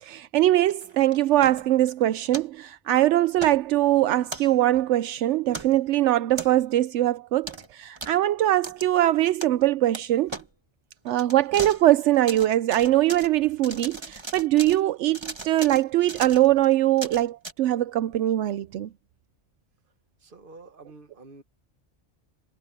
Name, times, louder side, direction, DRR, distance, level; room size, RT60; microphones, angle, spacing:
voice 1, 0.0-10.4 11.0-18.9, right 14 dB, 80° right, 0.9 m, -22 dB
sound 1, 0.7-1.9 2.3-2.5 3.3-3.6 4.3-4.8 5.5-5.8 6.4-6.8 7.4-7.7 8.0-8.2 8.6-8.9 9.4-9.7 9.9-10.0 10.3-10.5 11.1-11.9 12.1-13.3 13.6-14.8 15.1-17.5, right 2 dB, 25° right, 1.5 m, -38 dB
voice 2, 20.2-21.4, right 3 dB, 50° right, 1.5 m, -48 dB
omnidirectional pair, 1.2 m